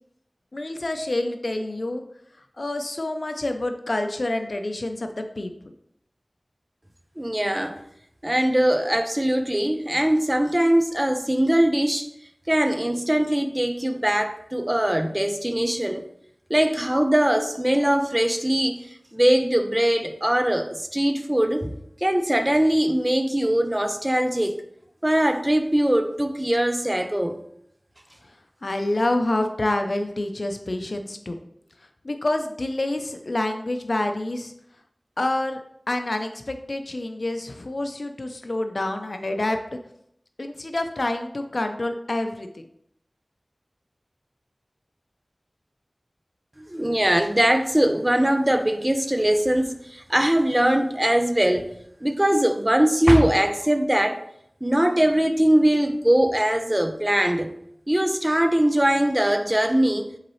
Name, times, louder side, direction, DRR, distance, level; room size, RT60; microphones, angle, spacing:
voice 1, 0.5-2.0 2.6-5.5 28.6-31.4 32.0-34.5 35.2-35.6 35.9-39.6 40.4-42.6, left 1 dB, 65° left, 0.6 m, -27 dB
voice 2, 7.2-7.8 8.2-12.1 12.5-16.1 16.5-18.9 19.1-21.7 22.0-24.6 25.0-27.4 46.7-51.7 52.0-54.2 54.6-57.5 57.9-60.1, right 1 dB, 20° right, 0.6 m, -21 dB
7.3 x 4.1 x 3.2 m
wide cardioid pair, 45°, 0 cm